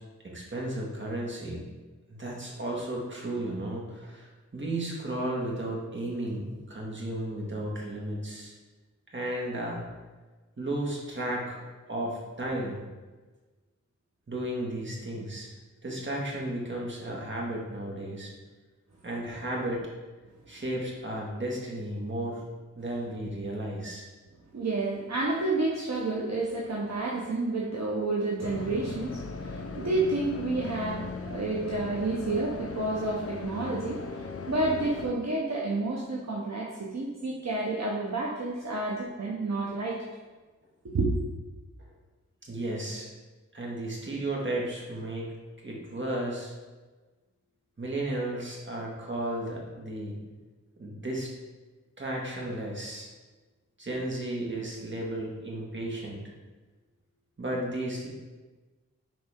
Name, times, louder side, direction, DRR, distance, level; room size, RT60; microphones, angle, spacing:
voice 1, 0.2-1.6 2.1-4.3 4.5-8.5 9.1-9.8 10.6-11.6 11.9-12.8 14.3-15.5 15.8-18.3 19.0-19.9 20.5-22.4 22.8-24.1 31.3-31.4 42.4-43.1 43.5-45.3 45.6-46.5 47.8-50.2 50.8-51.3 52.0-53.1 53.8-56.2 57.4-58.1, right 1 dB, 40° right, -3 dB, 1.9 m, -34 dB
voice 2, 24.5-40.0 40.8-41.1, right 2 dB, 60° right, -3 dB, 1.1 m, -30 dB
sound 1, 28.4-35.1, left 4 dB, 50° left, 0.7 m, -38 dB
10.5 x 4.3 x 3.7 m, 1.3 s
wide cardioid pair, 95°, 30 cm